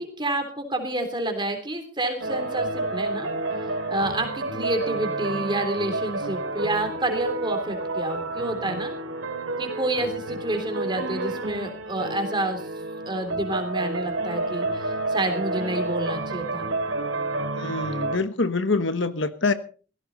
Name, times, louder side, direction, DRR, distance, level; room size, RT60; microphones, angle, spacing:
voice 1, 0.0-3.3 3.9-8.9 9.6-12.7 13.1-16.7, right 1 dB, 25° right, 3.5 m, -29 dB
sound 1, 2.2-18.2, right 2 dB, 90° right, 2.6 m, -30 dB
voice 2, 17.6-19.5, left 3 dB, 70° left, 1.3 m, -25 dB
17.0 x 16.0 x 4.1 m
head